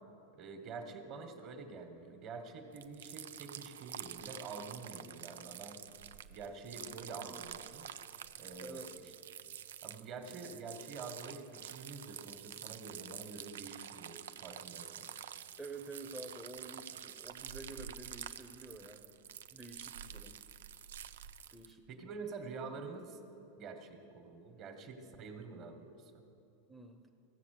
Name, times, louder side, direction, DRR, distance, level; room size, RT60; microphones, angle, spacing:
voice 1, 0.3-5.8 6.3-7.9 8.4-9.1 9.8-15.1 21.9-23.2 23.6-26.2, right 4 dB, 45° right, 6 dB, 1.4 m, -47 dB
sound 1, 2.7-21.7, right 9 dB, 85° right, 0.4 m, -48 dB
voice 2, 15.6-19.2 19.5-20.4 21.5-22.1 26.7-27.1, right 2 dB, ahead, 5 dB, 0.8 m, -49 dB
15.5 x 7.3 x 6.7 m, 2.7 s
hypercardioid pair, 120°, 0 cm